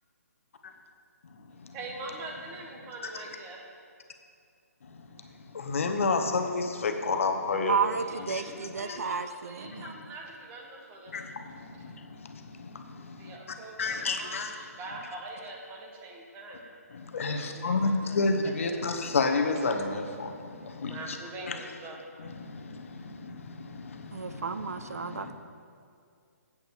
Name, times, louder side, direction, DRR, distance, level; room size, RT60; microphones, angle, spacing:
voice 1, 1.7-3.6 5.2-5.3 8.0-11.2 13.2-16.6 17.3-18.9 20.8-22.0, right 2 dB, 20° right, 0 dB, 1.5 m, -43 dB
voice 2, 4.8-7.8 8.3-9.0 9.7-9.9 11.1-13.4 13.8-14.6 16.9-21.2 21.5-21.6 22.2-25.3, left 3 dB, 55° left, 5 dB, 1.0 m, -31 dB
voice 3, 7.5-9.9 24.1-25.3, right 6 dB, 65° right, 10 dB, 0.6 m, -32 dB
8.3 x 7.8 x 6.9 m, 2.3 s
figure-of-eight pair, 135°, 9 cm